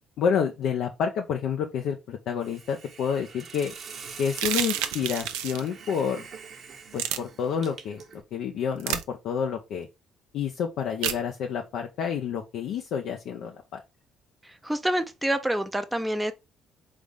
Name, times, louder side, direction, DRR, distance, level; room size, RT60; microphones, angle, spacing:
voice 1, 0.2-3.7 4.2-6.3 6.9-8.0 8.3-9.9 10.3-13.8, left 7 dB, 70° left, 0.5 m, -29 dB
Hiss, 2.4-8.2, right 6 dB, 55° right, 1.0 m, -44 dB
sound 1, 4.3-5.7 7.0-7.2 8.8-9.0 11.0-11.2, right 11 dB, 80° right, 0.4 m, -29 dB
voice 2, 14.6-16.3, right 1 dB, 10° right, 0.5 m, -27 dB
4.0 x 3.3 x 3.4 m
hypercardioid pair, 60°, 0 cm